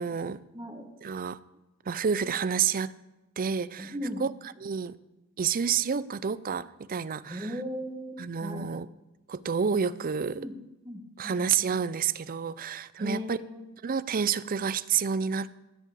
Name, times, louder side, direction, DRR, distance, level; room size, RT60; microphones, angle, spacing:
voice 1, 0.0-0.4 1.0-1.4 1.9-2.9 3.4-3.9 4.2-4.3 4.6-5.0 5.4-7.5 8.2-8.9 9.3-10.4 11.2-13.4 13.8-15.6, right 7 dB, 40° right, 17 dB, 0.4 m, -29 dB
voice 2, 0.5-0.9 3.8-4.2 7.3-8.6 10.4-10.5 10.8-11.8 13.0-13.6, equal, 20° right, 4 dB, 1.5 m, -37 dB
14.5 x 5.5 x 8.6 m, 1.0 s
head